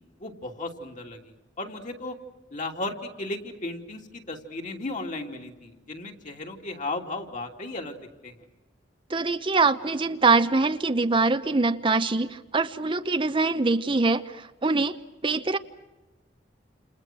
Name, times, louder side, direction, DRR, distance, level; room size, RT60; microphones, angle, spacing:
voice 1, 0.2-2.2 2.5-8.0 8.2-8.3, left 2 dB, 45° left, 2 dB, 3.1 m, -35 dB
voice 2, 9.1-15.0 15.2-15.6, right 3 dB, 30° right, 10 dB, 0.8 m, -23 dB
29.5 x 28.5 x 6.2 m, 1.1 s
head